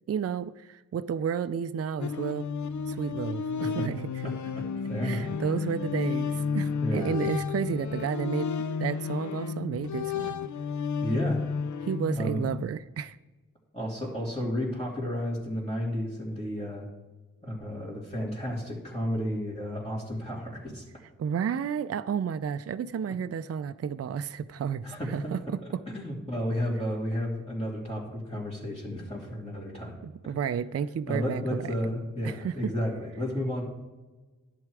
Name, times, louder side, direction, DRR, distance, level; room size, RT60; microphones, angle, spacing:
voice 1, 0.1-2.5 2.9-4.0 5.0-8.5 8.8-10.3 11.9-13.2 21.2-25.8 30.0-31.7 32.2-32.7, right 7 dB, 45° right, 12 dB, 0.4 m, -32 dB
sound 1, 2.0-12.6, left 5 dB, 60° left, 0.5 m, -32 dB
voice 2, 3.6-3.9 4.2-5.3 6.8-7.2 11.0-11.4 12.1-12.5 13.7-16.9 17.4-20.8 24.8-25.1 25.9-30.0 31.1-33.6, equal, 20° left, -6 dB, 2.8 m, -32 dB
11.0 x 7.8 x 4.7 m, 1.2 s
cardioid pair, 45°, 33 cm